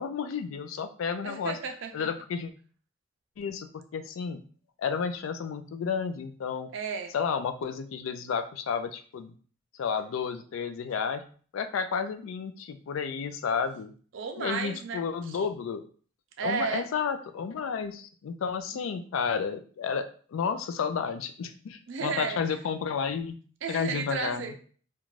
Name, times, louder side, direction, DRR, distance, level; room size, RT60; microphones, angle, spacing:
voice 1, 0.0-1.6 1.9-2.5 3.4-4.4 4.8-6.7 7.1-9.3 9.7-11.2 11.5-13.9 14.4-15.8 16.4-23.4 23.7-24.5, left 6 dB, 90° left, 10 dB, 0.3 m, -31 dB
voice 2, 1.2-2.1 6.7-7.1 14.1-15.4 16.4-16.9 21.9-22.4 23.6-24.6, right 5 dB, 75° right, 5 dB, 0.4 m, -33 dB
2.5 x 2.2 x 3.1 m, 0.43 s
head